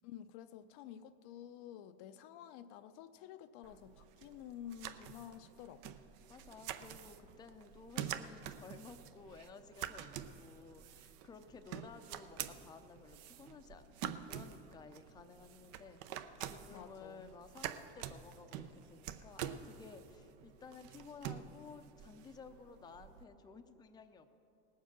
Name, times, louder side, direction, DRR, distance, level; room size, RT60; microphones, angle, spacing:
voice 1, 0.0-6.0 16.7-17.3, left 10 dB, 60° left, 10 dB, 0.6 m, -51 dB
sound 1, 3.6-23.2, right 10 dB, 60° right, 0.8 m, -47 dB
voice 2, 6.3-24.3, left 5 dB, 15° left, 7 dB, 0.6 m, -55 dB
18.5 x 7.3 x 6.0 m, 2.7 s
supercardioid pair, 120°, 30 cm